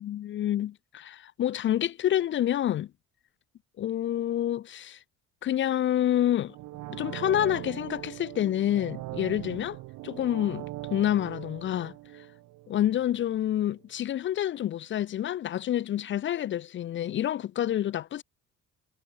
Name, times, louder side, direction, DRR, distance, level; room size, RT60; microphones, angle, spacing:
voice 1, 0.0-2.9 3.8-5.0 5.4-6.6 6.9-9.8 10.0-11.9 12.7-18.2, left 11 dB, 40° left, 0.5 m, -28 dB
sound 1, 6.5-13.3 13.6-13.7, right 18 dB, 75° right, 1.6 m, -41 dB
cardioid pair, 125°, 31 cm